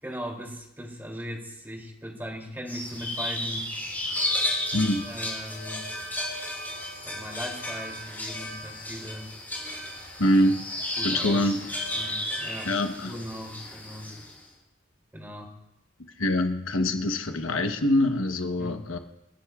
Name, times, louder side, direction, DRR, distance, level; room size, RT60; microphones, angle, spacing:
voice 1, 0.0-3.7 5.0-5.8 7.0-9.3 11.0-11.4 11.9-12.7 13.0-14.1 15.1-15.6 18.6-18.9, equal, 10° right, 0 dB, 2.7 m, -38 dB
sound 1, 2.7-14.4, left 1 dB, 10° left, 6.4 m, -33 dB
voice 2, 4.7-5.1 10.2-10.6 11.0-11.6 12.6-13.1 16.2-19.0, left 1 dB, 85° left, 6 dB, 1.0 m, -24 dB
28.5 x 10.0 x 2.4 m, 0.85 s
head